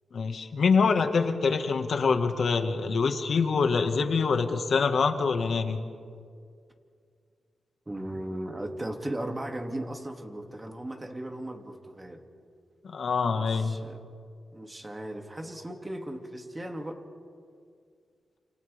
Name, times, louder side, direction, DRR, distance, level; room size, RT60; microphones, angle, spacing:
voice 1, 0.1-5.8 12.8-13.8, left 5 dB, 65° left, 5 dB, 1.8 m, -25 dB
voice 2, 7.9-12.2 13.3-14.0 14.5-17.0, right 1 dB, 20° right, 3 dB, 2.5 m, -37 dB
30.0 x 28.0 x 3.6 m, 2.2 s
cardioid pair, 85°, 0 cm